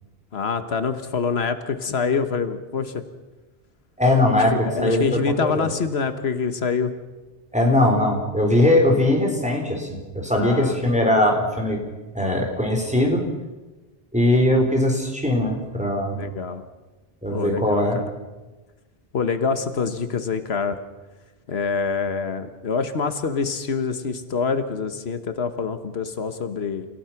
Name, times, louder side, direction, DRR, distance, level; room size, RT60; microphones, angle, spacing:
voice 1, 0.3-3.0 4.6-6.9 10.4-10.8 16.2-16.6 17.3-18.0 19.1-20.8 21.5-26.9, left 5 dB, 85° left, 10 dB, 1.5 m, -25 dB
voice 2, 4.0-5.7 7.5-11.8 12.1-13.2 14.1-16.2 17.2-18.0, left 1 dB, 5° right, 1 dB, 4.0 m, -20 dB
30.0 x 16.0 x 5.9 m, 1.2 s
omnidirectional pair, 1.0 m